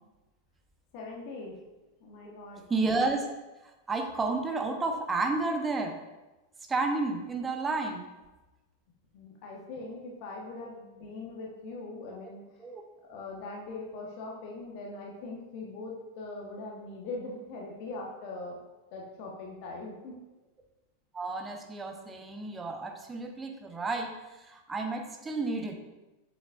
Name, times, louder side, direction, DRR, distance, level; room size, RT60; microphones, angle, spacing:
voice 1, 0.9-1.6 2.0-2.6 9.1-12.4 13.0-18.6 18.9-20.1, left 3 dB, 45° left, -1 dB, 1.3 m, -41 dB
voice 2, 2.7-3.3 3.6-6.0 6.7-8.1 12.6-12.8 21.1-25.8, right 3 dB, 15° right, 4 dB, 1.0 m, -31 dB
7.7 x 7.2 x 2.6 m, 1.1 s
figure-of-eight pair, 90°, 0 cm